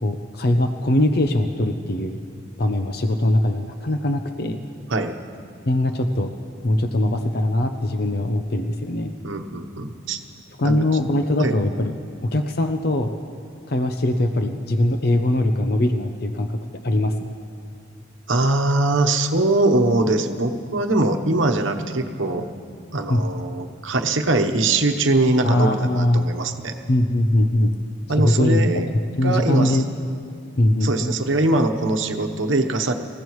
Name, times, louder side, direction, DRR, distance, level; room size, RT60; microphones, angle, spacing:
voice 1, 0.0-2.2 2.6-4.6 5.7-6.3 6.6-9.1 10.6-11.9 12.2-13.1 13.7-16.6 16.8-17.1 23.1-23.2 25.4-26.3 26.9-27.7 28.2-28.6 29.2-29.8 30.6-31.1, left 1 dB, 50° left, 6 dB, 0.7 m, -21 dB
voice 2, 9.2-10.2 10.6-10.8 11.4-11.6 18.3-22.5 22.9-26.7 28.1-28.9 29.2-29.8 30.8-32.9, right 2 dB, 80° right, 5 dB, 1.0 m, -22 dB
27.0 x 15.5 x 3.2 m, 2.3 s
head